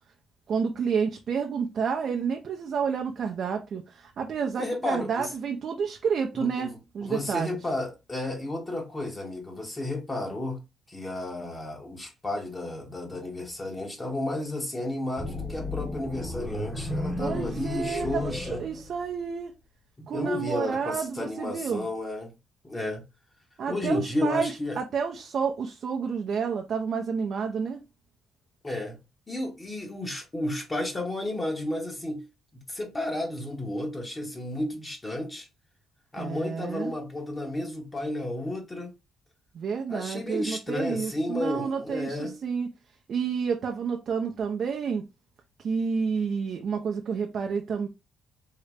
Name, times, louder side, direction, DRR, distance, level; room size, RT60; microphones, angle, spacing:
voice 1, 0.5-6.7 6.9-7.6 17.2-19.5 20.1-21.9 23.6-27.8 36.2-36.9 39.5-42.7 43.1-45.0 45.6-47.9, right 6 dB, 60° right, 0.5 m, -30 dB
voice 2, 4.6-5.3 6.3-6.7 7.0-10.6 10.9-18.6 20.0-22.3 22.6-23.0 23.7-24.8 28.6-29.0 29.3-32.3 32.7-35.5 36.1-38.9 39.9-42.4, left 1 dB, 25° left, 1.0 m, -32 dB
sound 1, 15.2-19.4, left 1 dB, 10° right, 0.9 m, -34 dB
3.7 x 2.1 x 3.3 m
cardioid pair, 90°, 0 cm